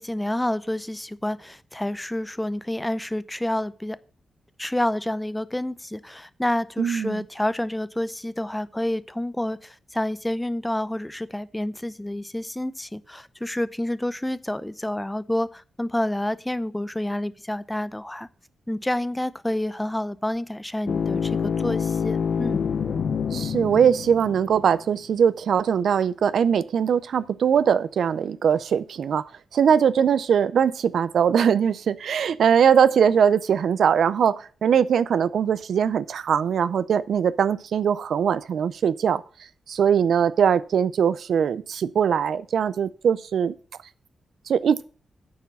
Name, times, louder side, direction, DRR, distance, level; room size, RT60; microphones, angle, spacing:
voice 1, 0.0-4.0 4.6-18.3 18.7-22.6, left 1 dB, 10° left, 0.6 m, -28 dB
voice 2, 6.8-7.2 23.3-29.2 29.5-39.2 39.7-43.5 44.5-44.8, right 7 dB, 80° right, 0.4 m, -21 dB
sound 1, 20.9-24.8, left 6 dB, 70° left, 0.6 m, -27 dB
9.3 x 4.5 x 7.2 m
cardioid pair, 65°, 0 cm